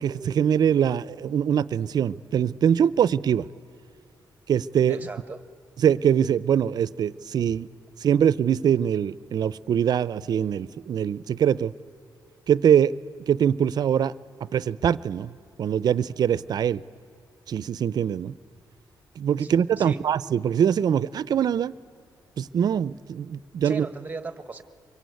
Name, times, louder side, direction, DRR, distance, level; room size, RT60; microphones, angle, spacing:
voice 1, 0.0-3.5 4.5-5.0 5.8-7.7 8.0-11.7 12.5-12.9 13.3-14.1 14.4-15.3 15.6-16.8 17.5-18.3 19.2-21.7 22.4-23.9, right 8 dB, 60° right, 18 dB, 0.6 m, -23 dB
voice 2, 4.9-5.4 19.4-20.0 23.6-24.6, right 3 dB, 20° right, 12 dB, 1.2 m, -37 dB
24.5 x 22.5 x 9.4 m, 2.5 s
wide cardioid pair, 145°, 8 cm